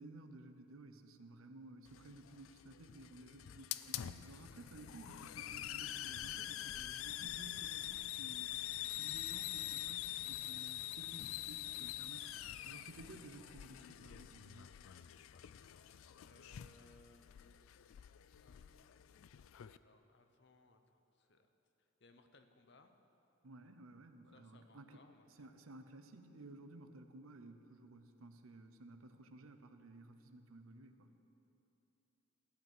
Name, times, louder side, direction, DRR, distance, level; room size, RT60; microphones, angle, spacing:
voice 1, 0.0-14.7 23.4-25.0 25.4-31.1, right 2 dB, 75° right, 8 dB, 0.8 m, -55 dB
Hiss, 1.9-19.8, left 13 dB, 70° left, 0.3 m, -45 dB
voice 2, 16.2-19.1 19.8-21.5 21.8-22.9 24.3-25.6, left 2 dB, 55° left, 7 dB, 0.8 m, -66 dB
15.5 x 5.4 x 9.0 m, 2.9 s
head